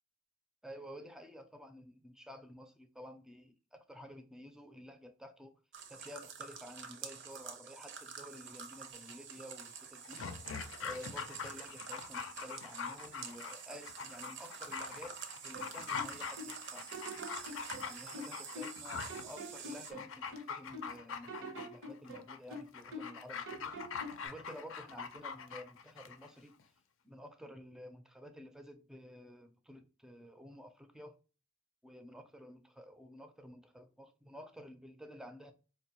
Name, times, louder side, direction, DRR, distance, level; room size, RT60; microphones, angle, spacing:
voice 1, 0.6-5.5 5.9-16.9 17.8-23.8 24.2-26.5 27.0-31.2 31.8-35.5, equal, 5° right, 0.4 m, -52 dB
sound 1, 5.7-19.9, right 6 dB, 60° right, 0.6 m, -48 dB
Dog, 10.0-26.3 26.6-26.7, left 6 dB, 85° left, 0.4 m, -44 dB
sound 2, 15.5-16.6 16.9-18.8 19.1-20.9 21.3-23.2 23.5-24.3, equal, 90° right, 1.0 m, -46 dB
4.6 x 2.2 x 2.7 m
head